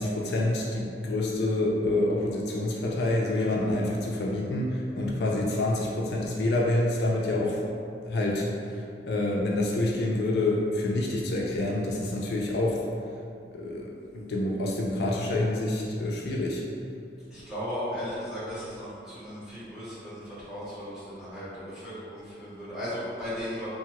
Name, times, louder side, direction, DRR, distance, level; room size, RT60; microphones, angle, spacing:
voice 1, 0.0-7.6 8.1-8.5 9.1-12.8 13.5-16.6, left 2 dB, 65° left, -3 dB, 0.3 m, -27 dB
voice 2, 17.3-23.7, equal, 5° right, -13 dB, 1.0 m, -36 dB
2.8 x 2.3 x 2.9 m, 2.4 s
head